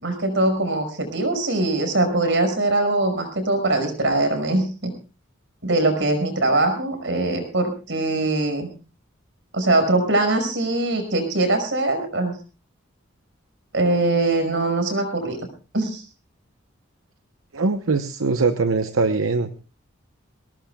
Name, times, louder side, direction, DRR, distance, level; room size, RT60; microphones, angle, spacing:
voice 1, 0.0-4.9 5.6-8.7 9.5-12.3 13.7-15.4 15.7-16.0, right 2 dB, 65° right, 7 dB, 5.5 m, -22 dB
voice 2, 17.5-19.6, right 3 dB, 85° right, 9 dB, 0.9 m, -22 dB
23.0 x 18.5 x 2.3 m, 0.34 s
head